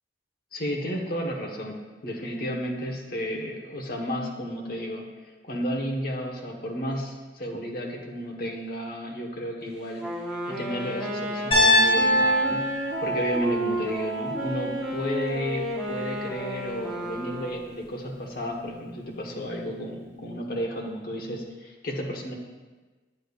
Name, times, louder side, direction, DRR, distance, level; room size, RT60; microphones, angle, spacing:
voice 1, 0.5-5.1 5.4-10.1 10.5-12.7 13.0-22.3, equal, 55° left, 1 dB, 1.1 m, -32 dB
Wind instrument woodwind instrument, 10.0-17.8, right 1 dB, 5° right, 1.0 m, -32 dB
Piano, 11.5-15.6, left 1 dB, 35° left, 2.6 m, -24 dB
8.7 x 8.2 x 2.4 m, 1.3 s
head